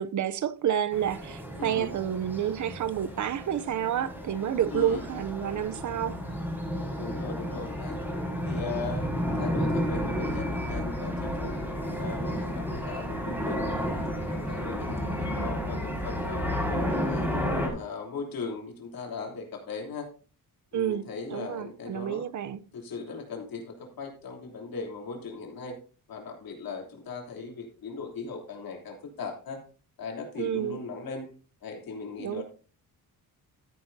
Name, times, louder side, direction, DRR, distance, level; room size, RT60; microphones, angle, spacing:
voice 1, 0.0-6.2 20.7-22.6 30.4-30.8 32.2-32.4, right 10 dB, 55° right, 0.6 m, -29 dB
sound 1, 0.9-17.7, equal, 5° right, 4.9 m, -32 dB
voice 2, 1.6-1.9 4.7-5.0 7.0-8.0 8.4-11.6 11.9-13.9 14.2-17.3 17.7-20.1 20.7-22.3 22.7-25.8 26.1-29.6 30.0-31.3 31.6-32.4, left 4 dB, 70° left, 3.2 m, -38 dB
13.5 x 9.7 x 2.7 m
cardioid pair, 135°, 36 cm